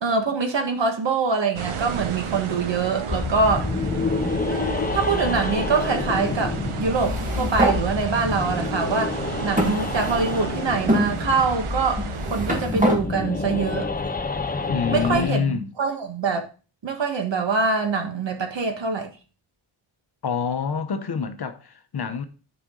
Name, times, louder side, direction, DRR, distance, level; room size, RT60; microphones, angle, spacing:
voice 1, 0.0-3.7 4.5-13.9 14.9-16.5 16.8-19.1, right 4 dB, 60° right, 1.6 m, -24 dB
sound 1, 1.5-12.7, right 7 dB, 85° right, 1.0 m, -33 dB
sound 2, 3.1-15.3, left 4 dB, 20° left, 0.5 m, -28 dB
sound 3, 7.0-7.8 8.6-8.7 9.6-10.4 10.9-11.1 12.0-13.0, equal, 15° right, 1.8 m, -24 dB
voice 2, 14.7-15.7 20.2-22.2, left 6 dB, 50° left, 0.9 m, -26 dB
10.5 x 5.0 x 3.8 m
wide cardioid pair, 140°, 48 cm